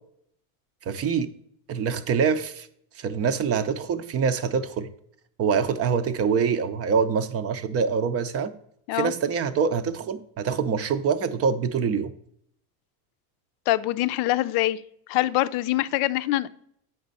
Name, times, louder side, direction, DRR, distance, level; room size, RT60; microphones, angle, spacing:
voice 1, 0.9-1.3 1.7-2.7 3.0-4.9 5.4-8.5 8.9-12.1, right 6 dB, 35° right, 12 dB, 0.6 m, -25 dB
voice 2, 13.7-14.8 15.1-16.5, left 16 dB, 60° left, 15 dB, 0.5 m, -24 dB
7.8 x 5.4 x 4.0 m, 0.69 s
supercardioid pair, 110°, 45 cm